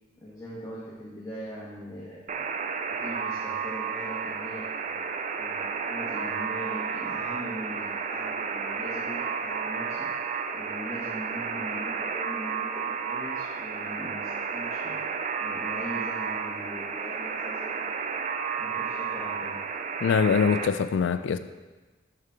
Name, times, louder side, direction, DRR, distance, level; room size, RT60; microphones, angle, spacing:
voice 1, 0.2-2.5 2.9-5.0 5.3-10.1 10.5-15.0 15.4-17.9 18.6-19.6, equal, 15° left, 1.1 m, -41 dB
Alarm, 2.3-20.7, right 6 dB, 40° right, 0.3 m, -32 dB
voice 2, 20.0-21.4, left 6 dB, 75° left, 0.3 m, -23 dB
6.5 x 5.7 x 3.6 m
head